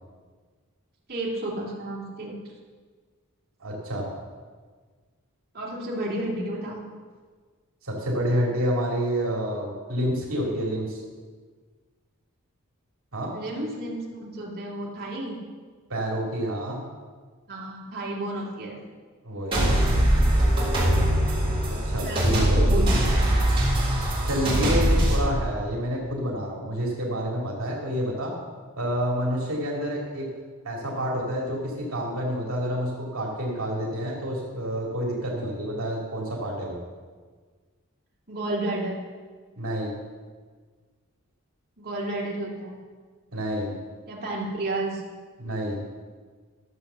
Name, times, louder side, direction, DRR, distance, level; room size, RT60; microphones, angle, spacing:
voice 1, 1.1-2.4 5.5-6.8 13.3-15.4 17.5-18.8 22.0-22.9 38.3-39.0 41.8-42.8 44.1-45.0, right 1 dB, 45° right, -5 dB, 2.6 m, -31 dB
voice 2, 3.6-4.1 7.8-11.0 13.1-13.3 15.9-16.8 19.2-19.7 21.6-22.7 24.2-28.3 28.8-30.3 30.6-36.8 39.6-39.9 43.3-43.8 45.4-45.8, equal, 70° right, -3 dB, 2.4 m, -28 dB
sound 1, 19.5-25.2, right 1 dB, 25° right, 3.5 m, -21 dB
12.5 x 6.9 x 6.8 m, 1.5 s
head